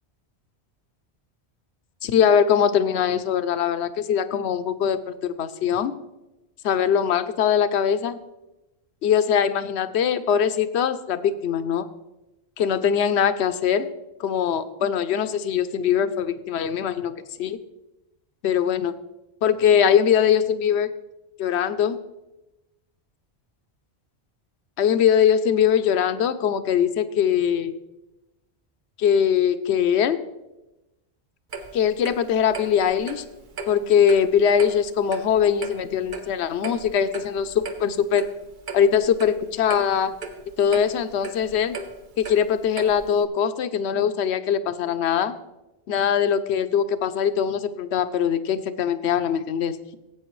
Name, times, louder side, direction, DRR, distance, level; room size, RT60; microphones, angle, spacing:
voice 1, 2.0-5.9 6.6-8.2 9.0-11.8 12.6-13.9 14.2-17.1 17.4-17.6 18.4-18.9 19.4-20.9 21.4-22.0 24.8-27.7 29.0-30.2 31.7-33.2 33.7-38.3 38.7-40.2 40.6-41.8 42.2-45.3 45.9-49.8, left 8 dB, 80° left, 12 dB, 0.9 m, -22 dB
Clock, 31.5-43.2, right 3 dB, 50° right, 1.0 m, -38 dB
16.5 x 8.4 x 3.1 m, 0.98 s
omnidirectional pair, 1.1 m